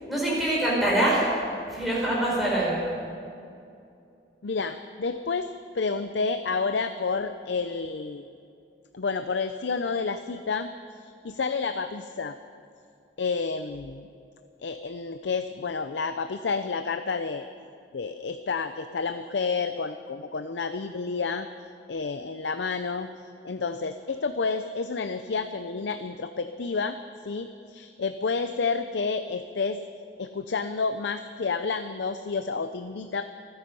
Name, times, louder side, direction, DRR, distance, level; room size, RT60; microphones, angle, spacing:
voice 1, 0.1-1.3 1.7-2.8, right 1 dB, ahead, -6 dB, 5.0 m, -24 dB
voice 2, 4.4-5.5 5.7-8.3 8.9-12.4 13.2-14.1 14.6-17.5 17.9-21.5 21.9-23.1 23.4-27.0 27.2-29.8 30.2-33.2, left 4 dB, 85° left, 9 dB, 0.6 m, -30 dB
27.0 x 9.9 x 5.4 m, 2.5 s
head